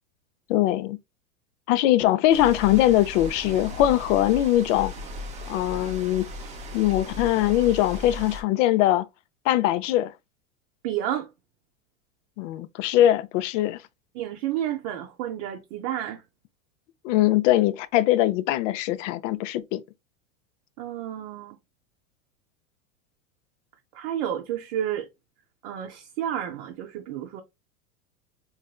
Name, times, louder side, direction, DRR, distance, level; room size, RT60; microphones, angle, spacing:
voice 1, 0.5-1.0 1.7-4.9 5.5-6.3 6.7-9.1 9.5-10.1 12.4-13.8 17.0-19.8, left 14 dB, 60° left, 0.5 m, -21 dB
sound 1, 2.3-8.4, left 1 dB, 15° right, 0.4 m, -37 dB
voice 2, 10.8-11.3 14.1-16.2 20.8-21.6 23.9-25.1 25.6-27.4, right 11 dB, 55° right, 0.6 m, -30 dB
4.0 x 2.5 x 2.3 m
hypercardioid pair, 115°, 44 cm